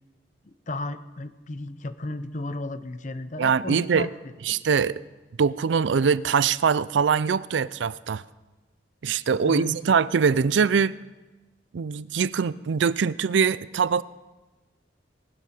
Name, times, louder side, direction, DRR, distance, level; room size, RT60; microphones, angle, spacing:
voice 1, 0.4-4.1 4.5-4.6 9.4-9.7, left 2 dB, 40° left, 12 dB, 0.7 m, -34 dB
voice 2, 3.4-4.1 4.4-5.0 5.4-8.2 9.0-10.9 11.7-14.0, right 6 dB, 80° right, 18 dB, 0.4 m, -23 dB
19.5 x 12.0 x 4.4 m, 1.2 s
head